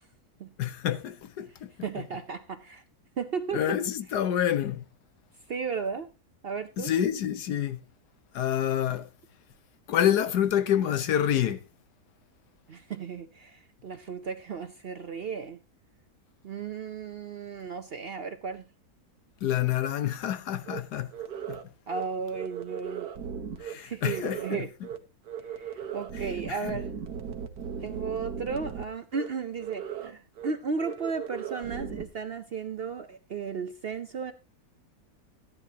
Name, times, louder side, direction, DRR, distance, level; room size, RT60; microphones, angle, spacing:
voice 1, 0.6-1.7 3.5-4.8 6.8-7.8 8.3-9.1 9.9-11.6 19.4-21.1 21.5-21.6 23.6-24.6 26.5-26.8, left 10 dB, 85° left, 1.5 m, -27 dB
voice 2, 1.8-2.8 3.2-3.8 5.5-6.1 6.4-6.9 12.7-15.6 16.4-18.6 21.9-23.1 23.7-24.7 25.4-26.9 27.8-34.3, right 5 dB, 55° right, 0.7 m, -35 dB
sound 1, 20.7-20.8 21.1-21.6 21.9-22.0 22.3-23.7 24.1-24.6 24.8-25.0 25.3-28.8 29.1-29.3 29.6-30.1 30.4-30.5 30.8-32.0, right 7 dB, 75° right, 1.6 m, -37 dB
14.0 x 10.5 x 2.8 m
omnidirectional pair, 1.7 m